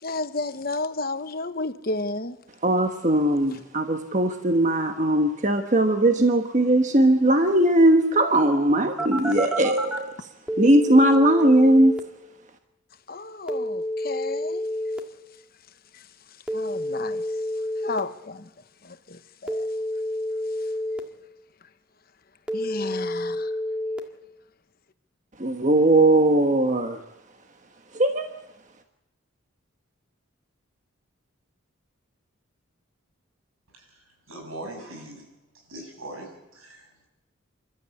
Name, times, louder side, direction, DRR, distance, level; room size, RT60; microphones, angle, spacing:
voice 1, 0.0-2.4 3.5-3.6 8.8-9.4 13.1-14.7 15.9-16.1 16.5-17.4 17.8-18.5 18.8-19.7 20.6-20.7 22.5-23.5, left 2 dB, 45° left, 1.0 m, -33 dB
voice 2, 2.6-10.1 10.6-11.9 25.4-27.0 27.9-28.3, right 1 dB, 35° right, 1.3 m, -19 dB
Telephone, 9.0-10.0 10.5-12.0 13.5-15.0 16.5-18.0 19.5-21.0 22.5-24.0, equal, 5° right, 1.7 m, -29 dB
voice 3, 34.3-35.2 35.7-37.1, right 1 dB, 90° right, 7.3 m, -40 dB
28.0 x 13.0 x 8.3 m
head